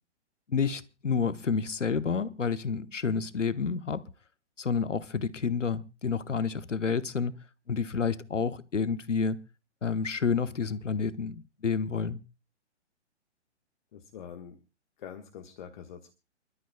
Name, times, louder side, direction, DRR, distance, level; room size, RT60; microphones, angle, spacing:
voice 1, 0.5-4.0 4.6-7.4 7.7-9.4 9.8-12.2, left 5 dB, 85° left, 1.1 m, -29 dB
voice 2, 13.9-14.6 15.0-16.1, left 8 dB, 40° left, 1.4 m, -45 dB
28.5 x 12.5 x 2.3 m
figure-of-eight pair, 130°, 36 cm